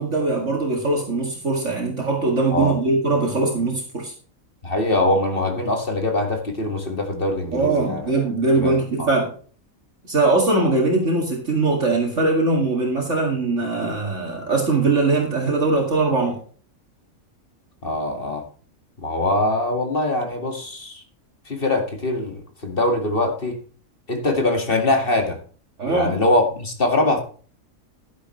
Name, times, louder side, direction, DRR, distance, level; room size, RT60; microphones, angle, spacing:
voice 1, 0.0-4.1 7.5-9.3 10.1-16.4 25.8-26.2, right 3 dB, 60° right, 1 dB, 2.5 m, -21 dB
voice 2, 4.6-8.1 8.5-8.7 9.0-9.1 17.8-18.4 19.0-21.0 21.5-23.6 24.1-25.4 25.9-27.2, left 2 dB, 40° left, 4 dB, 2.2 m, -22 dB
11.5 x 9.9 x 3.2 m, 0.41 s
omnidirectional pair, 1.4 m